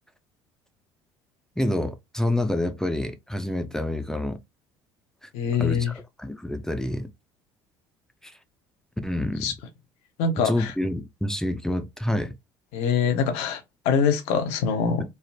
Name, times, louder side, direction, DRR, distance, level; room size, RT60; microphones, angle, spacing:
voice 1, 1.6-4.4 5.2-5.3 5.6-7.1 8.2-8.3 9.0-9.5 10.4-12.3, left 1 dB, 5° left, 0.5 m, -28 dB
voice 2, 5.3-5.9 9.4-9.5 10.2-10.7 12.7-15.0, left 6 dB, 70° left, 0.8 m, -24 dB
3.3 x 2.0 x 2.6 m
hypercardioid pair, 70°, 11 cm